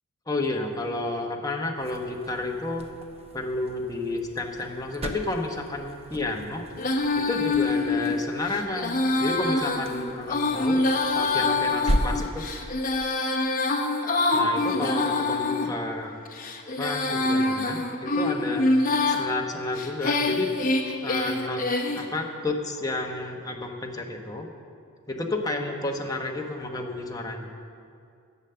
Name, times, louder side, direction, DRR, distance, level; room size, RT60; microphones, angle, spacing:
voice 1, 0.3-2.9 3.3-6.6 7.2-10.8 11.1-12.5 14.3-16.2 16.8-18.7 19.1-20.5 21.0-21.6 21.9-24.5 25.1-27.5, left 2 dB, 15° left, 1 dB, 1.1 m, -31 dB
sound 1, 1.7-12.9, equal, 30° right, 0.8 m, -36 dB
Female singing, 6.8-15.7 16.3-19.2 19.8-22.1, left 3 dB, 40° left, 1.0 m, -25 dB
12.0 x 8.1 x 6.8 m, 2.4 s
head